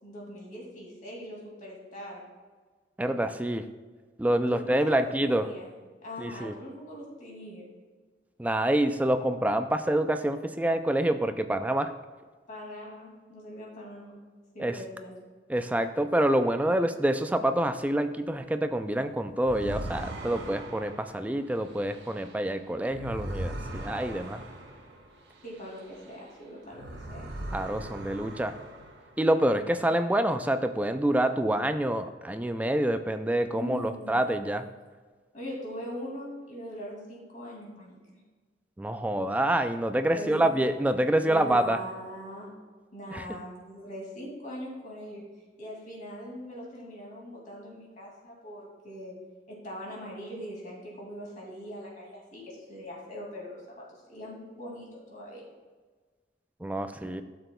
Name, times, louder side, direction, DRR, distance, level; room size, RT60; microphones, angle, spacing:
voice 1, 0.0-2.2 4.5-5.7 6.0-7.7 12.5-14.2 14.5-15.1 25.4-27.3 33.6-34.3 35.3-38.0 40.1-40.6 41.2-42.6 42.9-45.2 45.6-49.1 49.5-55.4, equal, 45° left, -3 dB, 2.4 m, -41 dB
voice 2, 3.0-3.7 4.2-5.5 6.2-6.5 8.4-11.9 14.6-14.8 15.5-24.4 27.5-28.5 29.2-34.7 38.8-41.8 43.1-43.3 56.6-57.2, right 1 dB, 10° right, 9 dB, 0.3 m, -27 dB
sound 1, 19.4-26.3 26.6-29.3, right 1 dB, 70° right, 1.1 m, -40 dB
12.5 x 6.8 x 2.3 m, 1.4 s
head